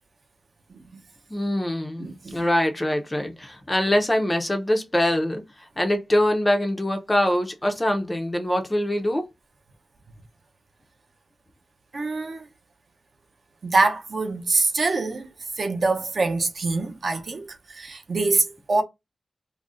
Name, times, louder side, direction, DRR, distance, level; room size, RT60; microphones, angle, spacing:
voice 1, 0.7-1.0 2.0-2.4 11.9-12.5 13.6-15.3 15.6-18.8, right 3 dB, 50° right, 0.6 m, -25 dB
voice 2, 1.3-5.4 5.8-9.2, left 1 dB, 15° left, 0.4 m, -23 dB
2.4 x 2.0 x 3.6 m
wide cardioid pair, 165°, 0 cm